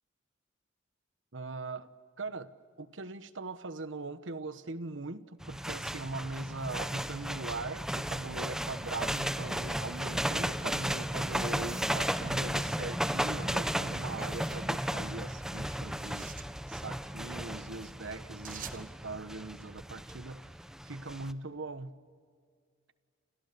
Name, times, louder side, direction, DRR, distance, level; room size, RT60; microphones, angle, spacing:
voice 1, 1.3-16.3 16.7-20.6 20.8-22.0, right 3 dB, 75° right, 1.1 m, -41 dB
sound 1, 5.4-21.3, equal, 5° right, 0.7 m, -35 dB
sound 2, 8.7-10.3 11.7-12.3 14.0-14.7 15.9-16.5 18.4-18.9, right 9 dB, 45° right, 1.4 m, -50 dB
29.5 x 28.0 x 6.9 m
head